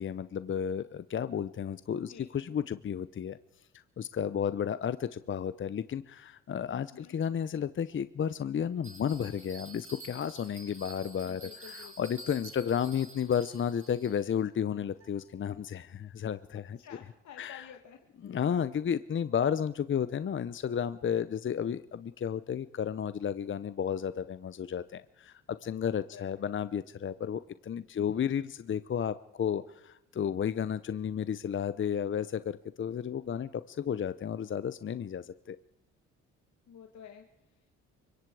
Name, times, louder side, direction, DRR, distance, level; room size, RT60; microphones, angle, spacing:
voice 1, 0.0-3.4 3.7-16.8 17.4-17.7 18.2-35.6, left 8 dB, 40° left, 14 dB, 0.8 m, -33 dB
Bell, 8.8-14.4, right 1 dB, 25° right, 7.0 m, -49 dB
voice 2, 11.2-12.2 16.8-18.0 25.6-26.3 27.9-28.2 36.7-37.7, left 8 dB, 70° left, 4 dB, 2.3 m, -52 dB
sound 1, 14.9-16.4, right 4 dB, 60° right, 5.3 m, -70 dB
24.5 x 22.5 x 4.8 m, 0.82 s
cardioid pair, 90°, 30 cm